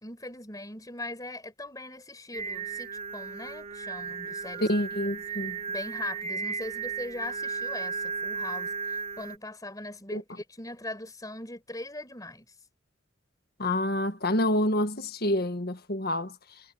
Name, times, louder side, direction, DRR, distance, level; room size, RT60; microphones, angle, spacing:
voice 1, 0.0-4.8 5.7-12.5, left 2 dB, 15° left, 4.9 m, -40 dB
Singing, 2.3-9.4, right 5 dB, 35° right, 3.8 m, -35 dB
voice 2, 4.6-5.6 10.1-10.2 13.6-16.6, left 1 dB, 50° left, 1.6 m, -28 dB
head